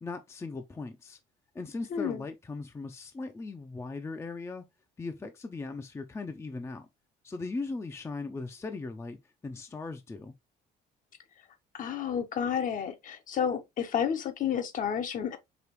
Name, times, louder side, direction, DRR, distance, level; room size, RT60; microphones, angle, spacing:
voice 1, 0.0-1.2 1.5-4.6 5.0-6.9 7.2-9.2 9.4-10.3, left 3 dB, 15° left, 0.5 m, -38 dB
voice 2, 1.9-2.2 11.7-15.4, left 8 dB, 50° left, 0.8 m, -31 dB
4.9 x 2.9 x 2.9 m
cardioid pair, 110°, 17 cm